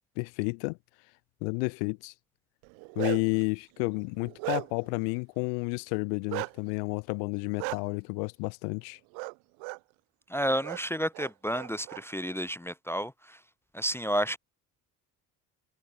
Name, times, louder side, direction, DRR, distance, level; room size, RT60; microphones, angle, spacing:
voice 1, 0.2-0.8 1.4-2.1 3.0-9.0, left 40 dB or more, 65° left, 0.7 m, -31 dB
Bark, 2.6-3.4 3.9-4.9 6.3-6.5 7.6-7.8 9.1-9.3 9.6-9.8 10.6-10.8 11.1-12.0, right 37 dB, 65° right, 0.7 m, -35 dB
voice 2, 10.3-13.4 13.7-14.4, equal, 5° left, 0.4 m, -31 dB
figure-of-eight pair, 50°, 50 cm